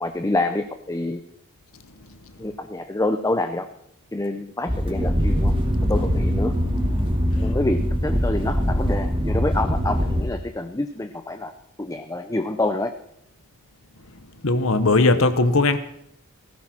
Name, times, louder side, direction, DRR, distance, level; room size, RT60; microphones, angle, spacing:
voice 1, 0.0-1.2 2.4-3.7 4.1-5.5 5.9-6.5 7.4-11.5 11.8-12.9, left 2 dB, 15° left, 8 dB, 0.6 m, -27 dB
sound 1, 4.7-10.2, equal, 25° right, 2.6 m, -22 dB
voice 2, 14.4-15.8, left 3 dB, 65° left, 11 dB, 1.1 m, -18 dB
17.5 x 15.0 x 4.4 m, 0.75 s
head